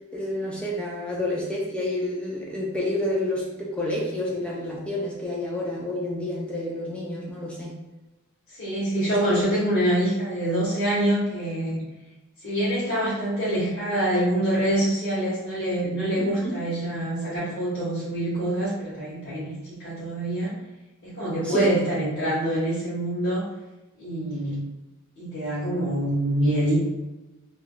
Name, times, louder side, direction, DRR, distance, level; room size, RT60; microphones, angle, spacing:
voice 1, 0.1-7.8 16.2-16.5 21.4-21.7, left 1 dB, 5° left, -4 dB, 0.4 m, -29 dB
voice 2, 8.6-11.8 12.4-20.5 21.0-23.4 24.0-24.6 25.2-26.8, right 1 dB, 50° left, -12 dB, 1.0 m, -25 dB
3.3 x 2.3 x 2.2 m, 1.1 s
head